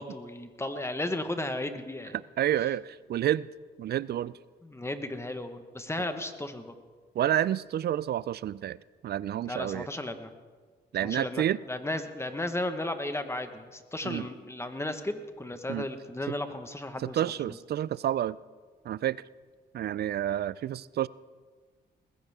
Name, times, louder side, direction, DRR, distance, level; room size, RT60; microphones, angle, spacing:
voice 1, 0.0-2.2 4.6-6.7 9.4-10.3 11.0-17.6, left 1 dB, 15° left, 8 dB, 1.4 m, -35 dB
voice 2, 2.4-3.5 3.8-4.3 7.2-8.8 9.0-9.9 10.9-11.6 14.0-14.2 15.7-15.9 17.0-18.4 18.9-19.2 19.7-21.1, right 11 dB, 60° right, 20 dB, 0.4 m, -29 dB
20.0 x 15.5 x 3.6 m, 1.5 s
cardioid pair, 75°, 19 cm